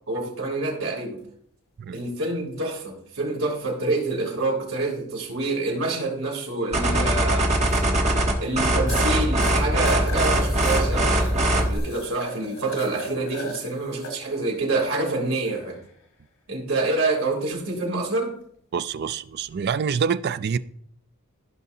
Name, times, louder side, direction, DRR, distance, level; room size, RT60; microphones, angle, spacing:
voice 1, 0.1-1.2 1.9-8.0 8.4-15.8 16.5-18.3, right 2 dB, 70° right, 3.4 m, -27 dB
sound 1, 1.9-2.1 4.6-4.7 7.7-7.8 8.3-8.4 8.9-9.1 9.4-14.1 14.6-14.8 15.4-15.9 19.4-19.6, left 1 dB, 85° left, 2.3 m, -37 dB
sound 2, 6.7-11.8, right 1 dB, 30° right, 1.3 m, -21 dB
voice 2, 18.7-20.6, right 6 dB, 50° right, 0.4 m, -26 dB
15.0 x 5.8 x 2.7 m
head